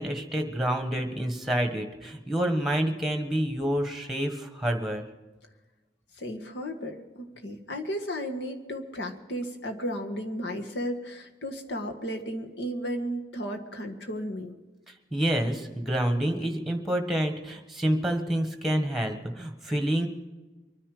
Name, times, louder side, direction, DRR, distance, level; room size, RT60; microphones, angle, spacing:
voice 1, 0.0-5.0 15.1-20.1, right 1 dB, ahead, 5 dB, 1.4 m, -28 dB
voice 2, 6.2-14.6, equal, 75° left, 3 dB, 1.8 m, -34 dB
24.0 x 10.0 x 5.0 m, 1.2 s
head